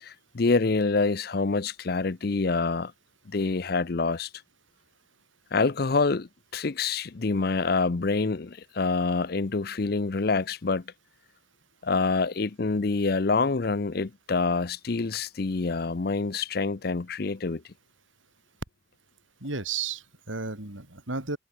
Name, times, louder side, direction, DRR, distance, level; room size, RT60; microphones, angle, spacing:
voice 1, 0.0-2.9 3.3-4.3 5.5-10.8 11.8-17.6, left 4 dB, 50° left, 0.6 m, -26 dB
voice 2, 19.4-21.4, right 4 dB, 85° right, 4.0 m, -33 dB
head